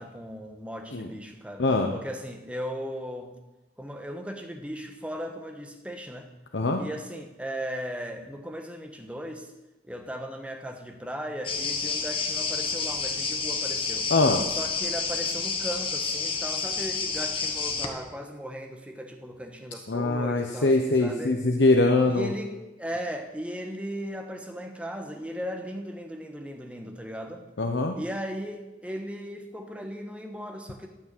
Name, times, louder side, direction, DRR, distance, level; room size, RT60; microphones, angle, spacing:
voice 1, 0.0-1.6 1.9-3.3 3.8-6.3 6.8-9.5 9.8-14.1 14.5-21.4 22.1-27.4 28.0-30.9, equal, 5° right, 4 dB, 1.3 m, -37 dB
voice 2, 1.6-1.9 6.5-6.8 14.1-14.4 19.9-22.3 27.6-27.9, left 2 dB, 85° left, 3 dB, 0.9 m, -23 dB
sound 1, 11.4-17.9, left 5 dB, 30° left, 1.4 m, -29 dB
13.5 x 6.1 x 8.3 m, 1.0 s
head